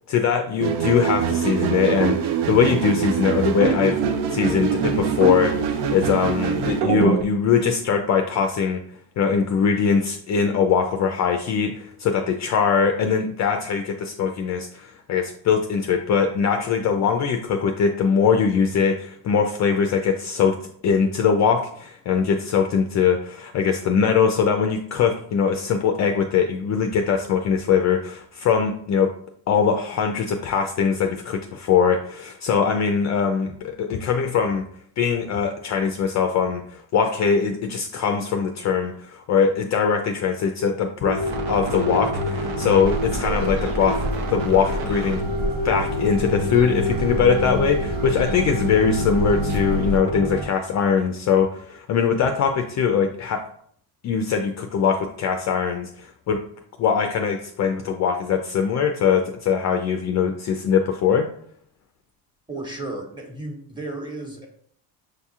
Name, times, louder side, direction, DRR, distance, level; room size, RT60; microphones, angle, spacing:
voice 1, 0.1-4.0 4.3-8.8 9.2-20.6 20.8-29.1 29.5-34.6 35.0-44.0 44.3-45.2 45.6-53.4 54.0-56.4 56.8-61.3, left 6 dB, 40° left, 4 dB, 0.4 m, -21 dB
sound 1, 0.6-7.2, right 7 dB, 65° right, 0.6 m, -23 dB
sound 2, 41.0-50.5, equal, 85° right, 0.9 m, -27 dB
sound 3, 42.8-50.0, right 1 dB, 50° right, 1.0 m, -31 dB
voice 2, 62.5-64.5, right 2 dB, 10° right, 1 dB, 1.2 m, -33 dB
6.3 x 2.7 x 2.4 m, 0.63 s
supercardioid pair, 90°, 43 cm